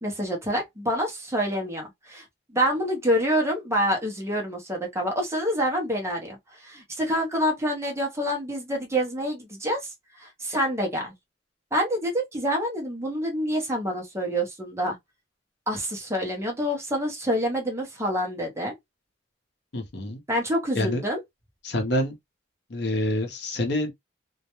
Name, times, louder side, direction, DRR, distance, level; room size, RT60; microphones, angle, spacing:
voice 1, 0.0-9.9 10.2-11.1 11.7-15.0 15.7-18.7 20.3-21.2, equal, 15° right, 0.7 m, -27 dB
voice 2, 19.7-20.2 20.7-21.0 21.6-22.1 22.7-23.9, left 1 dB, 65° left, 0.7 m, -26 dB
2.2 x 2.1 x 2.9 m
head